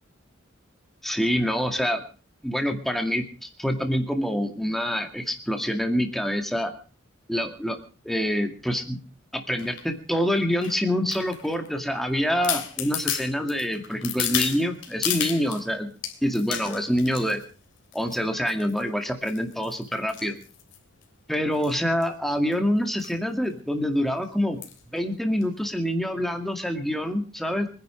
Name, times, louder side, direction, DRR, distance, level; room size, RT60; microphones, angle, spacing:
voice 1, 1.0-2.0 2.4-6.7 7.3-7.8 8.0-9.0 9.3-15.9 16.2-17.4 17.9-20.4 21.3-24.6 24.9-27.7, equal, ahead, 4 dB, 2.2 m, -26 dB
sound 1, 9.6-9.9 10.6-11.7 12.1-12.2 12.4-15.6 16.0-17.4 17.9-18.2 18.5-18.8 19.3-21.0 21.5-21.8 22.0-22.1 22.3-22.5 23.0-23.2 23.5-23.6 24.6-24.9 25.4-25.5, left 10 dB, 70° left, 3.3 m, -32 dB
24.5 x 10.5 x 5.1 m, 0.38 s
head